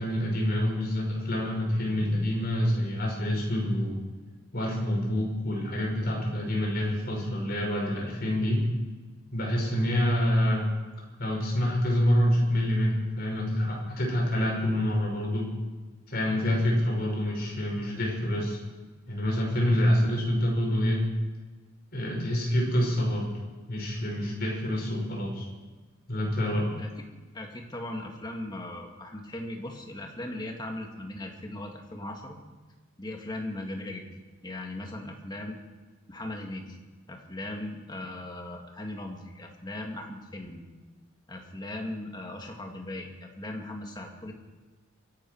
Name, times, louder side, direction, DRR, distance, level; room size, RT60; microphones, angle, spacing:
voice 1, 0.0-4.0 4.5-8.6 9.3-10.7 11.2-15.5 16.1-18.6 19.1-21.0 21.9-23.3 23.7-25.4 26.1-26.7, equal, 50° left, -2 dB, 5.8 m, -27 dB
voice 2, 27.3-32.4 33.0-34.0 34.4-35.6 36.1-36.8 37.1-40.6 41.3-44.3, left 1 dB, 20° left, 2 dB, 2.0 m, -38 dB
24.5 x 12.0 x 4.6 m, 1.3 s
head